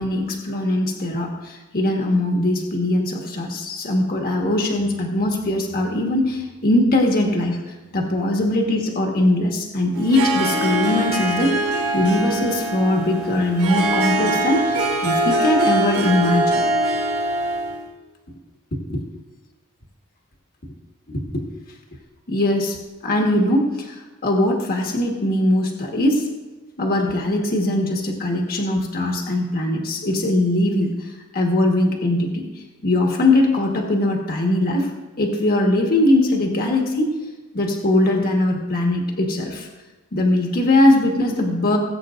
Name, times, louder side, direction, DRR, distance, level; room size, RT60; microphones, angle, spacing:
voice 1, 0.0-7.6 7.9-11.6 11.9-16.6 18.7-19.0 21.1-21.4 22.3-22.8 23.0-26.3 26.8-32.5 32.8-34.9 35.2-37.1 37.5-39.7 40.1-41.8, left 1 dB, 45° left, 1 dB, 1.4 m, -21 dB
Harp, 9.9-17.8, right 1 dB, 80° right, 2.0 m, -22 dB
19.5 x 8.4 x 2.5 m, 1.2 s
head